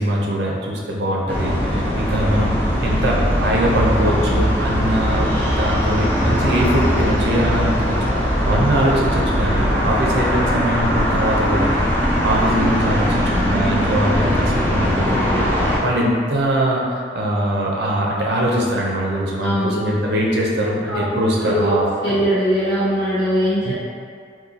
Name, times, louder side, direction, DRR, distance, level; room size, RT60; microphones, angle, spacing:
voice 1, 0.0-2.6 2.8-11.7 12.2-22.2 23.6-23.7, right 1 dB, 60° right, -2 dB, 0.6 m, -22 dB
sound 1, 1.3-15.8, equal, 10° left, 0.4 m, -20 dB
voice 2, 19.4-19.8 20.9-21.7 22.0-23.7, equal, 85° left, -15 dB, 1.1 m, -21 dB
2.7 x 2.6 x 3.8 m, 2.2 s
head